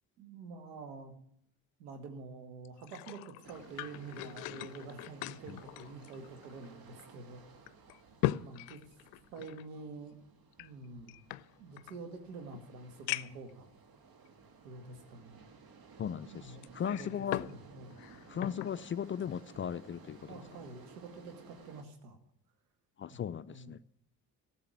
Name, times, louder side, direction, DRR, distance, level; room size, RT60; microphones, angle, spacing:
voice 1, 0.2-1.1 1.8-7.4 8.4-8.8 9.3-10.2 10.6-11.2 11.6-13.7 14.6-15.5 16.2-18.0 20.3-22.2 23.1-23.2 23.5-23.7, right 3 dB, 80° right, 1.9 m, -47 dB
sound 1, 2.6-6.7 7.0-7.1 7.7-9.7 10.5-12.0 12.5-12.6 13.1-13.5 14.3-14.4 16.6-17.6 17.9-18.8 19.2-19.4, left 17 dB, 75° left, 0.6 m, -39 dB
sound 2, 3.4-21.8, right 4 dB, 50° right, 1.6 m, -57 dB
voice 2, 16.0-17.5 18.3-20.3 23.0-23.8, left 8 dB, 30° left, 0.4 m, -37 dB
13.5 x 6.9 x 9.2 m
hypercardioid pair, 55°, 46 cm